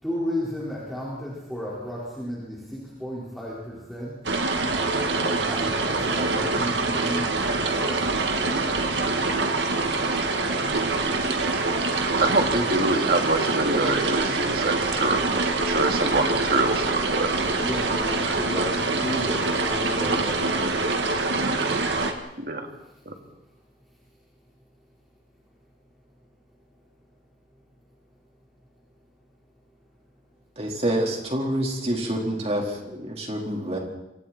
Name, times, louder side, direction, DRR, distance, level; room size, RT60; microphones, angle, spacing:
voice 1, 0.0-4.2 5.2-8.8 17.6-20.8 22.8-22.9, equal, ahead, -7 dB, 4.8 m, -33 dB
sound 1, 4.2-22.1, right 3 dB, 85° right, 2.1 m, -25 dB
voice 2, 12.2-17.3 22.4-22.7 23.1-23.2, right 2 dB, 55° right, 4 dB, 2.6 m, -25 dB
voice 3, 30.6-33.8, right 1 dB, 35° right, 0 dB, 4.3 m, -27 dB
28.5 x 25.0 x 4.4 m, 0.92 s
head